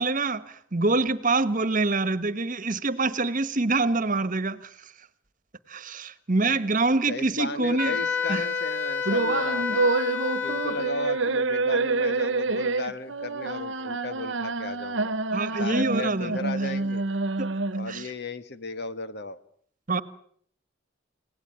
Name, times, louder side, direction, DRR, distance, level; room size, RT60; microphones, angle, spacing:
voice 1, 0.0-4.7 5.7-7.9 8.3-8.4 15.3-16.3 17.4-17.5 17.9-18.0 19.9-20.0, right 3 dB, 40° right, 1.4 m, -25 dB
voice 2, 7.1-9.9 10.4-15.1 15.6-17.0 17.8-19.4, left 2 dB, 55° left, 1.6 m, -35 dB
Wind instrument woodwind instrument, 7.8-11.2, left 6 dB, 70° left, 3.0 m, -29 dB
sound 1, 9.0-18.0, right 3 dB, 70° right, 1.2 m, -27 dB
29.5 x 18.0 x 9.1 m
head